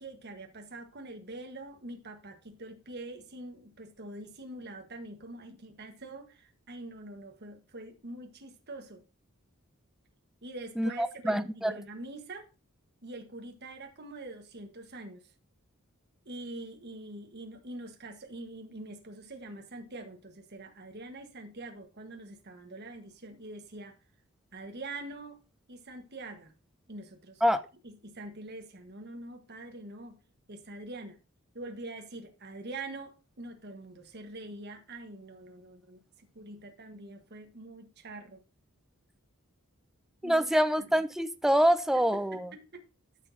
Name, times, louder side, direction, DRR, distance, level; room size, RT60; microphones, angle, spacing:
voice 1, 0.0-9.0 10.4-12.5 13.0-15.3 16.2-23.9 24.5-25.4 25.7-26.5 26.9-27.4 27.8-30.2 30.5-31.2 31.5-38.4 40.2-40.5 40.8-40.9 41.9-42.0 42.3-42.8, right 2 dB, 50° right, 1.3 m, -44 dB
voice 2, 10.8-11.7 27.4-27.6 40.2-42.5, equal, ahead, 0.3 m, -26 dB
13.0 x 6.1 x 2.7 m
head